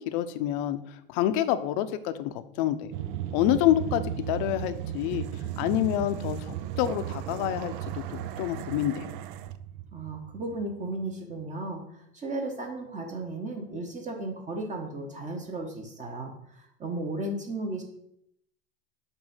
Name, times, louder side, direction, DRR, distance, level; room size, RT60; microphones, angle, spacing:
voice 1, 0.1-0.8 1.1-2.9 3.3-5.2 5.6-9.0, left 12 dB, 60° left, 11 dB, 0.7 m, -27 dB
sound 1, 2.9-11.1, right 11 dB, 60° right, 0.5 m, -36 dB
voice 2, 9.9-17.8, right 2 dB, 25° right, 2 dB, 1.2 m, -35 dB
8.0 x 2.7 x 5.6 m, 0.74 s
supercardioid pair, 105°, 29 cm